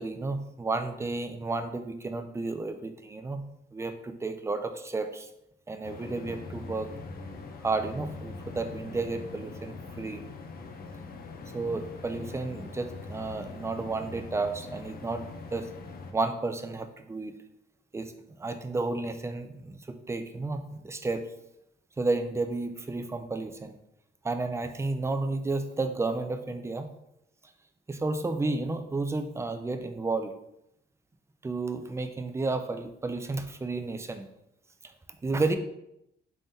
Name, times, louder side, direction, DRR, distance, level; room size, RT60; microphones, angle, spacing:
voice 1, 0.0-3.4 3.7-5.3 5.7-6.9 7.6-10.2 11.5-15.2 15.5-15.7 16.1-17.3 17.9-18.1 18.4-21.2 22.0-23.8 24.2-26.9 27.9-30.3 31.4-34.3 35.2-35.5, right 3 dB, 15° right, 8 dB, 0.4 m, -32 dB
sound 1, 5.8-16.1, left 3 dB, 50° left, 0.6 m, -42 dB
3.5 x 3.4 x 2.7 m, 0.80 s
cardioid pair, 90°, 20 cm